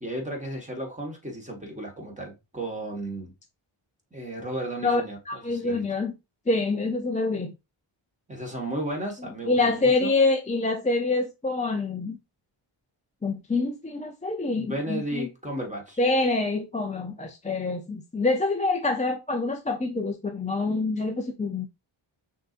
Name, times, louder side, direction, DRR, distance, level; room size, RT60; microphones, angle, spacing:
voice 1, 0.0-3.3 4.1-5.8 8.3-10.1 14.5-16.0, right 1 dB, 15° right, 1.5 m, -34 dB
voice 2, 5.3-6.1 6.5-7.5 9.5-12.2 13.2-15.3 16.0-21.7, left 3 dB, 15° left, 0.5 m, -26 dB
5.9 x 2.8 x 2.5 m
cardioid pair, 80°, 49 cm